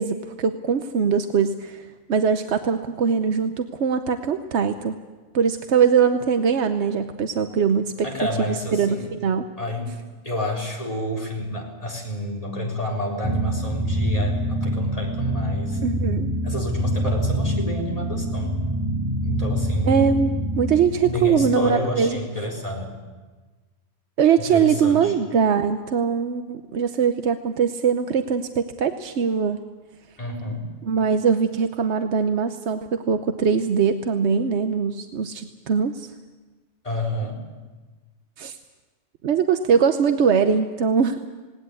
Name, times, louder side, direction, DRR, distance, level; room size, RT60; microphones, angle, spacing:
voice 1, 0.0-5.0 5.3-8.1 8.5-9.5 15.8-16.3 19.8-22.3 24.2-29.6 30.8-36.1 38.4-38.6 39.2-41.3, right 6 dB, 85° right, 8 dB, 1.1 m, -22 dB
voice 2, 8.0-9.1 9.6-9.9 10.2-15.8 16.4-18.6 19.2-20.0 21.0-22.9 24.4-25.1 30.2-30.7 36.8-37.4, left 1 dB, 35° left, 0 dB, 4.2 m, -29 dB
sound 1, 13.2-21.1, right 1 dB, 20° right, 3.2 m, -25 dB
19.0 x 18.5 x 8.4 m, 1.3 s
omnidirectional pair, 1.1 m